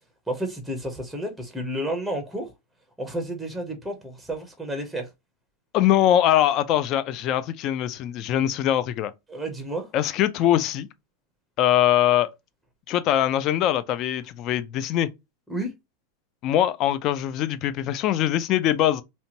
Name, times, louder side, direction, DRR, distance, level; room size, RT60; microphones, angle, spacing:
voice 1, 0.3-2.5 3.0-5.1 9.3-9.9 15.5-15.7, right 1 dB, ahead, 0.6 m, -31 dB
voice 2, 5.7-9.1 9.9-10.9 11.6-12.3 12.9-15.1 16.4-19.0, left 12 dB, 40° left, 0.3 m, -22 dB
2.7 x 2.2 x 2.8 m
supercardioid pair, 140°, 0 cm